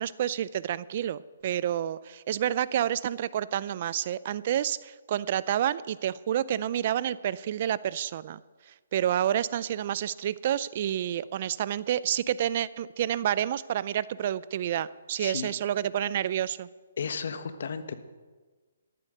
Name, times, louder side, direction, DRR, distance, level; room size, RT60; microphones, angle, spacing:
voice 1, 0.0-8.4 8.7-16.7, right 10 dB, 40° right, 19 dB, 0.4 m, -29 dB
voice 2, 15.2-15.5 17.0-17.9, left 6 dB, 60° left, 10 dB, 1.3 m, -34 dB
13.5 x 11.0 x 6.6 m, 1.4 s
hypercardioid pair, 160°, 0 cm